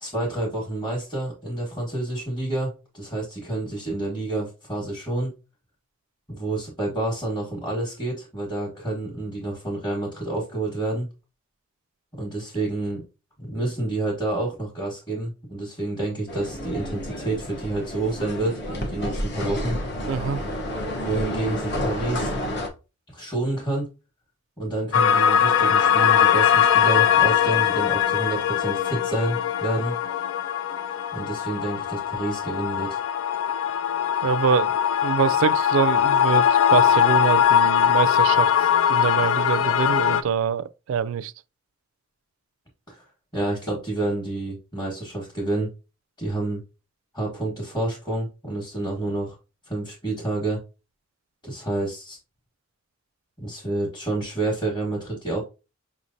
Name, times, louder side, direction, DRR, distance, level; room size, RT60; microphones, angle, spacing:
voice 1, 0.0-5.3 6.3-11.1 12.2-13.0 13.4-19.8 21.0-22.3 23.1-23.9 24.6-30.0 31.1-33.0 42.9-43.0 43.3-45.7 46.2-46.6 47.1-49.3 49.7-50.6 51.4-52.2 53.4-55.4, right 2 dB, 20° left, 1.4 m, -28 dB
sound 1, 16.3-22.7, equal, 55° left, 0.9 m, -30 dB
voice 2, 20.1-20.5 34.2-34.7 35.0-41.3, right 7 dB, 75° right, 0.3 m, -25 dB
sound 2, 24.9-40.2, left 9 dB, 80° left, 0.4 m, -21 dB
5.5 x 3.1 x 2.6 m
head